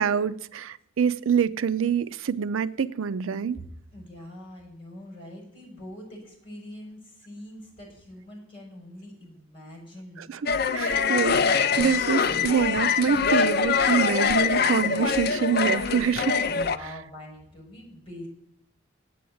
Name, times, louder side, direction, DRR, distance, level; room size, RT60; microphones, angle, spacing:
voice 1, 0.0-3.6 10.2-16.4, right 7 dB, 90° right, 0.5 m, -26 dB
voice 2, 3.9-10.3 16.4-18.3, left 1 dB, 25° left, 5.7 m, -44 dB
sound 1, 10.5-16.8, left 6 dB, 50° left, 0.5 m, -24 dB
9.2 x 8.5 x 7.8 m
head